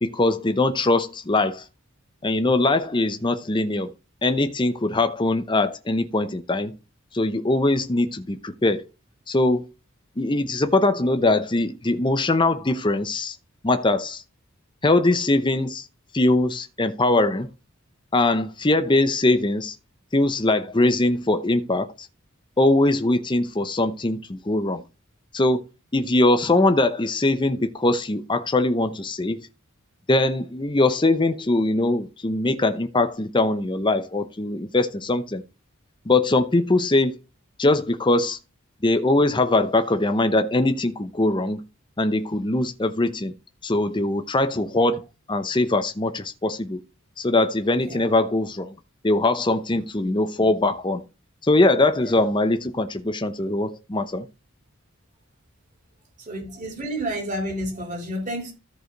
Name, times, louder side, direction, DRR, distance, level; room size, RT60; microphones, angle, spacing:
voice 1, 0.0-1.6 2.2-3.9 4.2-6.7 7.1-8.8 9.3-9.6 10.2-13.4 13.6-14.2 14.8-15.9 16.1-17.5 18.1-19.8 20.1-22.1 22.6-24.8 25.3-25.7 25.9-29.5 30.1-35.4 36.1-37.2 37.6-38.4 38.8-41.6 42.0-43.3 43.6-46.8 47.2-48.7 49.0-51.0 51.4-54.3, left 2 dB, 20° left, 0.7 m, -22 dB
voice 2, 51.9-52.3 56.3-58.5, right 1 dB, 35° right, 3.8 m, -31 dB
14.0 x 4.9 x 3.9 m
head